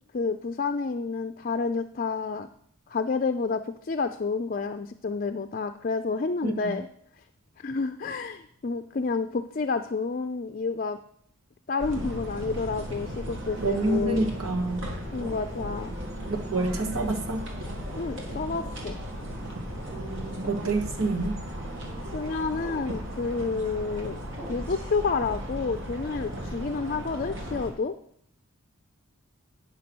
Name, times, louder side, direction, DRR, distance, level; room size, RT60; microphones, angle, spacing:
voice 1, 0.1-2.5 2.9-6.9 7.6-11.0 11.7-14.2 15.1-15.9 18.0-19.0 22.1-24.2 24.5-27.9, left 4 dB, 40° left, 8 dB, 0.4 m, -29 dB
voice 2, 6.4-6.7 13.6-14.9 16.5-17.4 19.9-21.4, right 2 dB, 85° right, 3 dB, 1.4 m, -28 dB
sound 1, 11.8-27.7, equal, 60° right, 2.1 m, -36 dB
sound 2, 12.0-12.3 13.7-14.1 15.2-15.5 16.5-16.9 17.6-17.9 18.5-18.7 19.8-20.0 20.4-20.6 21.8-22.0 22.6-22.9 24.3-24.6, equal, 40° right, 3.0 m, -45 dB
9.4 x 5.9 x 6.0 m, 0.65 s
head